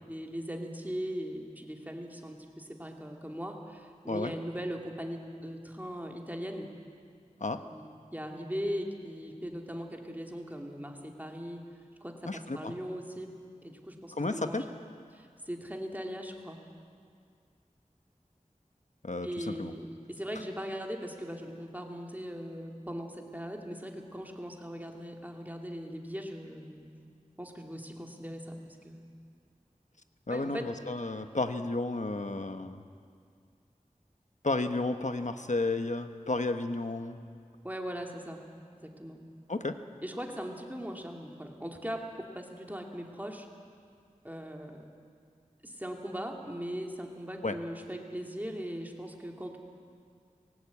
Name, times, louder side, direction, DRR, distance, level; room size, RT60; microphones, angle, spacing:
voice 1, 0.1-6.7 7.6-11.6 12.0-13.3 13.6-14.7 15.1-16.6 19.2-26.9 27.4-29.0 30.3-30.7 37.6-38.4 38.7-39.2 40.0-43.5 44.2-44.9 45.6-49.6, equal, 10° right, 1 dB, 2.6 m, -39 dB
voice 2, 12.2-12.7 14.1-14.6 19.0-19.7 30.3-32.8 34.4-37.2 39.5-39.8 47.4-47.6, left 2 dB, 60° left, 8 dB, 1.1 m, -32 dB
20.0 x 18.0 x 8.4 m, 2.2 s
wide cardioid pair, 45°, 14 cm